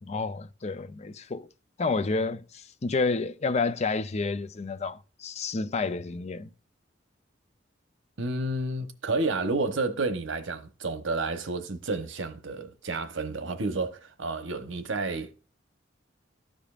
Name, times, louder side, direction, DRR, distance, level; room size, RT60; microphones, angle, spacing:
voice 1, 0.0-1.5 1.8-6.5, left 4 dB, 35° left, 0.5 m, -30 dB
voice 2, 8.2-15.3, right 3 dB, 85° right, 1.0 m, -30 dB
14.0 x 5.1 x 2.4 m
head